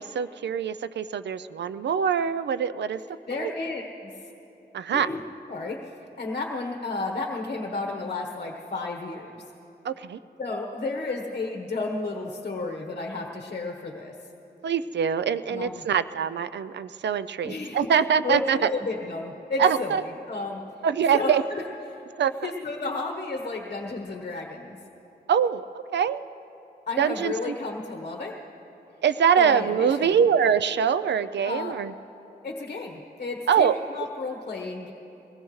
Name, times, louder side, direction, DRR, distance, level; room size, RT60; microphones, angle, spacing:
voice 1, 0.0-3.0 3.4-3.5 4.7-5.1 9.8-10.2 14.6-18.6 19.6-20.0 20.8-21.4 22.2-22.3 25.3-25.6 25.9-26.2 27.0-27.5 29.0-31.9 33.5-33.7, right 7 dB, 85° right, 13 dB, 0.5 m, -24 dB
voice 2, 3.3-4.1 4.9-5.2 5.5-9.4 10.4-14.1 15.5-15.9 17.4-17.9 18.2-20.6 21.1-21.6 22.4-24.8 26.9-28.3 29.4-30.3 31.4-31.8 32.4-34.9, left 3 dB, 45° left, 2 dB, 1.2 m, -32 dB
22.5 x 19.5 x 3.2 m, 3.0 s
wide cardioid pair, 100°, 18 cm